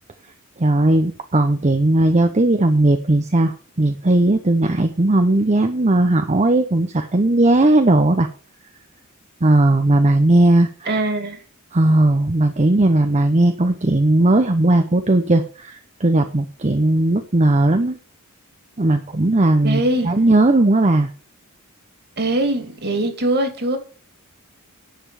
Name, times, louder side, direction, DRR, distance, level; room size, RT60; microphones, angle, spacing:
voice 1, 0.6-8.3 9.4-10.9 11.7-18.0 18.8-21.1, right 2 dB, 30° right, 0.8 m, -17 dB
voice 2, 10.9-11.4 19.6-20.1 22.2-23.8, right 1 dB, 50° right, 2.8 m, -21 dB
10.5 x 6.9 x 7.0 m
head